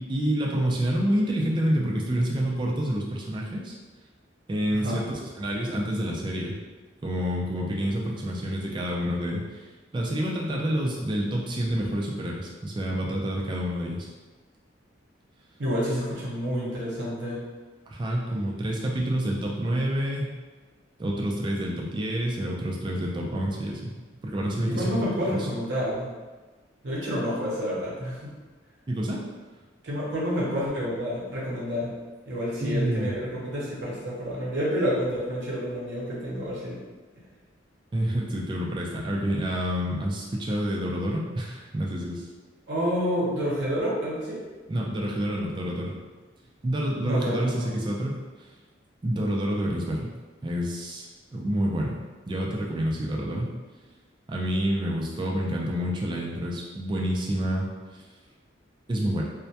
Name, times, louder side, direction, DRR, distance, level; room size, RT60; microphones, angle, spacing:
voice 1, 0.0-3.7 4.5-6.6 7.0-9.7 9.9-14.1 17.9-20.4 21.0-25.0 25.3-25.5 28.9-29.2 32.6-33.1 37.9-42.3 44.7-45.9 46.6-48.5 49.0-50.1 50.4-51.1 51.3-52.0 52.3-53.5 54.3-58.0 58.9-59.2, equal, 25° right, -2 dB, 0.3 m, -28 dB
voice 2, 4.7-5.0 15.6-17.4 24.7-26.1 26.8-28.3 29.8-31.9 32.3-36.8 42.7-44.4 47.0-47.7, equal, 60° right, -6 dB, 0.6 m, -29 dB
2.2 x 2.1 x 2.7 m, 1.3 s
head